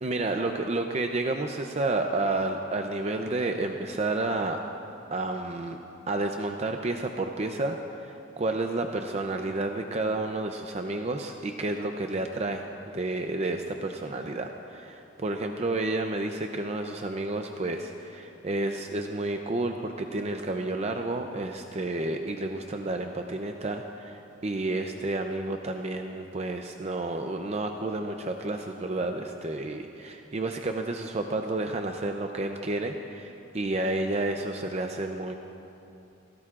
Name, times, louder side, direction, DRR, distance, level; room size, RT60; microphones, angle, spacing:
voice 1, 0.0-4.6 5.1-5.8 6.1-12.7 12.9-35.3, right 2 dB, 35° right, 4 dB, 0.6 m, -30 dB
29.0 x 17.0 x 2.5 m, 2.8 s
head